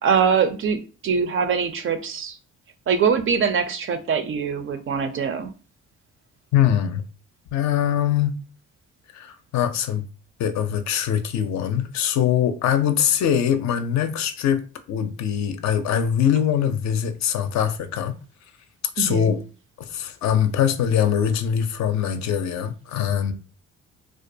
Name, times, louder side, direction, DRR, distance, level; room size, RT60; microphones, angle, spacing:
voice 1, 0.0-2.4 2.9-5.5 19.0-19.3, right 6 dB, 45° right, 0.4 m, -23 dB
voice 2, 6.5-7.0 7.5-8.3 9.1-10.1 10.4-18.1 19.0-19.5 19.8-23.3, left 9 dB, 65° left, 0.4 m, -22 dB
2.4 x 2.2 x 2.6 m
cardioid pair, 90°, 30 cm